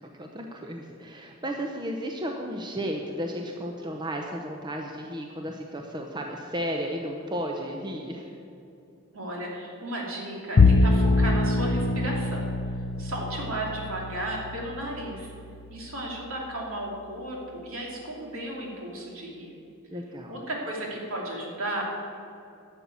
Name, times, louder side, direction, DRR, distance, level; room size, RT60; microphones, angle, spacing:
voice 1, 0.2-8.3 19.9-20.4, equal, 20° right, 2 dB, 0.7 m, -34 dB
voice 2, 9.1-12.5 13.0-15.3 15.7-19.6 20.3-21.8, right 1 dB, 65° right, -1 dB, 2.7 m, -34 dB
Bowed string instrument, 10.6-17.0, left 3 dB, 45° left, 0.4 m, -25 dB
11.5 x 7.1 x 8.6 m, 2.7 s
head